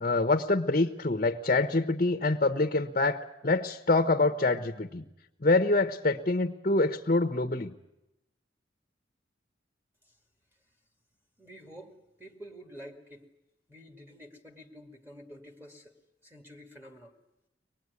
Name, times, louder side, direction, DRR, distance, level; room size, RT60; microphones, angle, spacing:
voice 1, 0.0-5.0 5.4-7.7, left 2 dB, 45° left, 7 dB, 1.0 m, -26 dB
voice 2, 11.4-13.2 13.7-16.0 16.2-17.1, equal, 10° right, 1 dB, 2.4 m, -49 dB
24.5 x 19.5 x 9.6 m, 0.91 s
head